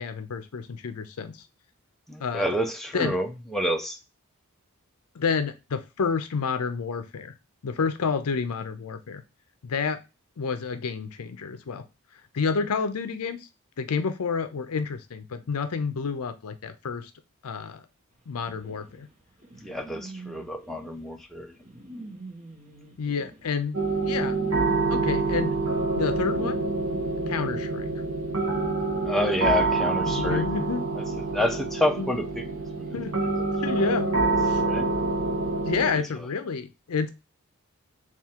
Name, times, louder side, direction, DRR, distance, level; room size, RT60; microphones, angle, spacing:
voice 1, 0.0-1.4 2.2-2.5 2.9-3.2 5.1-7.3 7.6-9.2 9.6-10.0 10.4-11.8 12.3-13.5 13.8-17.1 17.4-17.8 18.3-19.1 23.0-24.4 24.9-25.6 25.9-26.6 27.3-27.9 30.1-30.8 32.0-32.1 32.9-33.3 33.6-34.6 35.6-37.1, left 5 dB, 80° left, 0.5 m, -29 dB
voice 2, 2.1-4.0 19.6-21.5 29.0-30.5 31.3-32.4 32.8-32.9 33.8-33.9 34.6-34.9 35.9-36.0, left 1 dB, ahead, 0.5 m, -28 dB
sound 1, 18.5-27.6, right 2 dB, 35° right, 1.1 m, -44 dB
sound 2, 23.7-35.9, right 3 dB, 65° right, 0.8 m, -26 dB
3.6 x 2.4 x 4.2 m
head